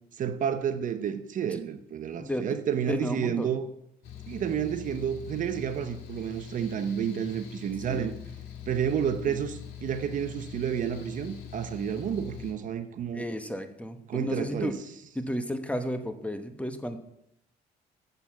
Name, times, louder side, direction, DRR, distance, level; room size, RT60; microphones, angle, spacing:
voice 1, 0.2-3.7 4.3-8.1 8.7-13.3 14.1-14.8, right 8 dB, 50° right, 0.8 m, -30 dB
voice 2, 2.2-2.6 2.9-3.5 7.9-8.1 9.3-9.4 13.1-14.7 15.1-17.0, equal, 10° left, 1.0 m, -33 dB
Mechanical fan, 4.0-12.5, left 8 dB, 80° left, 2.0 m, -43 dB
7.9 x 7.0 x 7.1 m
cardioid pair, 110°, 17 cm